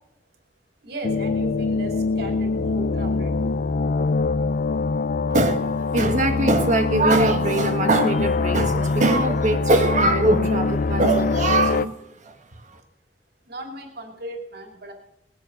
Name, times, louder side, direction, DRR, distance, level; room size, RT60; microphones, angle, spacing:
voice 1, 0.8-3.5 13.5-14.9, right 1 dB, 65° right, 3 dB, 2.7 m, -37 dB
sound 1, 1.0-11.9, left 3 dB, 50° left, 0.4 m, -23 dB
voice 2, 5.3-11.9 12.2-12.3 12.6-12.8, right 2 dB, 45° right, 6 dB, 1.6 m, -21 dB
20.0 x 9.6 x 6.4 m, 0.91 s
head